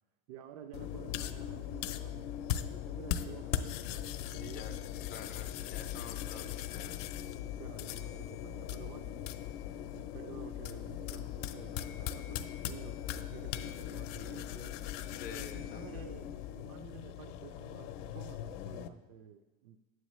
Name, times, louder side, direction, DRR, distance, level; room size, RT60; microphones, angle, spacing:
voice 1, 0.3-2.3 2.7-5.0 7.4-9.2 9.9-14.8 15.3-19.8, right 9 dB, 80° right, 7 dB, 0.6 m, -51 dB
sound 1, 0.7-18.9, left 11 dB, 75° left, 0.6 m, -39 dB
voice 2, 4.4-4.8 5.1-7.0 13.8-14.1 15.1-16.0, left 6 dB, 25° left, 5 dB, 0.4 m, -49 dB
9.6 x 7.6 x 3.1 m, 1.2 s
cardioid pair, 170°, 38 cm